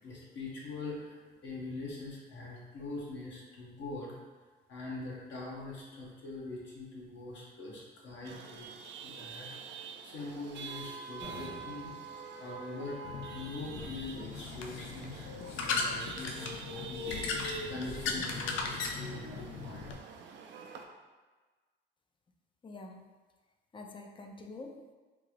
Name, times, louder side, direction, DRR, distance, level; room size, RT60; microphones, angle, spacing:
voice 1, 0.0-4.2 4.7-8.7 9.0-11.9 12.4-15.3 15.6-20.0, left 2 dB, 65° left, -4 dB, 1.1 m, -43 dB
Chatter / Vehicle horn car horn honking / Traffic noise roadway noise, 8.2-20.8, right 6 dB, 65° right, 0.4 m, -47 dB
sound 1, 11.2-12.2, left 1 dB, 40° left, 1.3 m, -47 dB
sound 2, 13.0-20.0, left 4 dB, 85° left, 0.4 m, -37 dB
voice 2, 22.6-23.1 23.7-24.9, left 2 dB, 25° left, 3 dB, 0.4 m, -46 dB
3.7 x 2.4 x 3.1 m, 1.3 s
cardioid pair, 90°, 20 cm